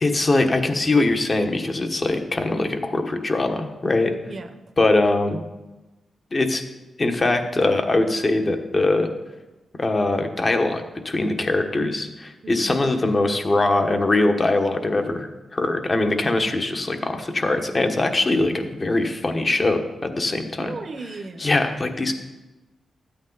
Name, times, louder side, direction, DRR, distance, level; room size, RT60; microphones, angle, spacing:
voice 1, 0.0-4.1 4.8-5.4 6.3-6.6 7.0-9.1 9.7-20.7 21.4-22.1, left 2 dB, 35° left, 5 dB, 1.3 m, -22 dB
voice 2, 4.2-4.6 12.4-12.8 20.6-21.5, right 3 dB, 50° right, 6 dB, 0.8 m, -36 dB
13.0 x 8.6 x 4.0 m, 1.1 s
cardioid pair, 70°, 0 cm